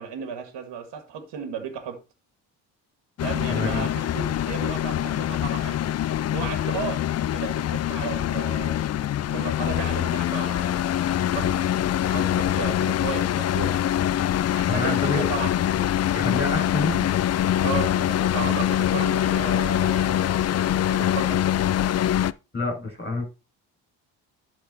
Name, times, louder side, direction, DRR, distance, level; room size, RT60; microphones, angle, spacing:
voice 1, 0.0-2.0 3.2-5.8 6.3-8.8 9.3-11.6 12.1-13.8 14.5-15.6 17.6-20.5 20.9-21.4, right 7 dB, 70° right, 1.9 m, -35 dB
sound 1, 3.2-22.3, left 11 dB, 40° left, 0.4 m, -24 dB
voice 2, 3.5-3.9 14.6-15.3 16.1-17.1 22.5-23.3, left 2 dB, 20° left, 5.9 m, -27 dB
11.5 x 4.4 x 4.1 m
supercardioid pair, 70°, 44 cm